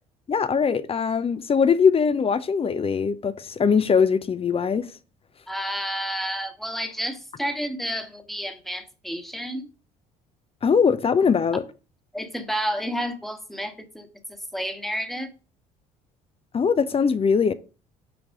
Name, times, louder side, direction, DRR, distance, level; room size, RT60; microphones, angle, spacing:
voice 1, 0.3-4.9 10.6-11.6 16.5-17.5, left 6 dB, 30° left, 0.8 m, -21 dB
voice 2, 5.5-9.7 12.1-15.3, equal, ahead, 1.5 m, -30 dB
6.2 x 4.8 x 5.2 m
hypercardioid pair, 60°, 19 cm